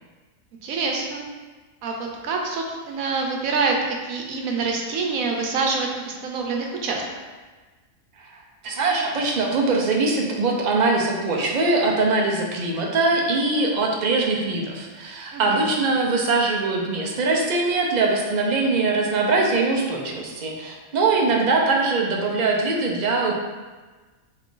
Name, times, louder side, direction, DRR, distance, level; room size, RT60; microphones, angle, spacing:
voice 1, 0.6-1.2 1.8-7.0 15.3-15.6, right 4 dB, 85° right, 1 dB, 1.1 m, -26 dB
voice 2, 8.2-23.3, right 3 dB, 55° right, -1 dB, 0.5 m, -22 dB
4.3 x 2.5 x 3.7 m, 1.3 s
omnidirectional pair, 1.4 m